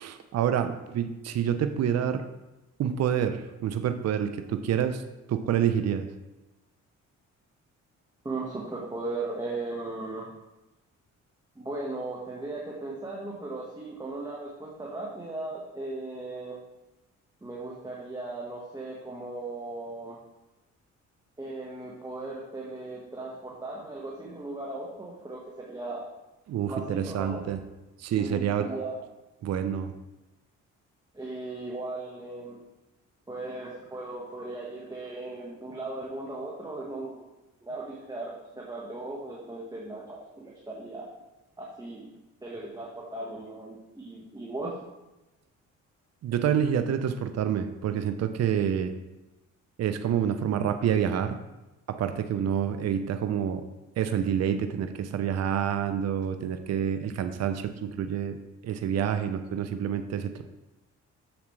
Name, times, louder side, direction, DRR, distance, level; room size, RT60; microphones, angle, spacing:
voice 1, 0.0-2.2 2.8-5.0 5.3-6.1 26.5-27.6 28.0-28.7 29.4-29.9 46.2-48.9 49.8-51.3 51.9-53.6 54.0-58.4 58.6-60.4, right 9 dB, 60° right, 8 dB, 0.6 m, -27 dB
voice 2, 8.2-10.3 11.5-16.6 17.4-20.2 21.4-26.0 26.7-27.4 28.2-29.0 31.1-32.6 33.3-37.2 37.6-41.1 41.6-42.1 42.4-44.7, right 2 dB, 15° right, -4 dB, 1.5 m, -37 dB
7.2 x 7.2 x 3.2 m, 1.0 s
cardioid pair, 90°, 30 cm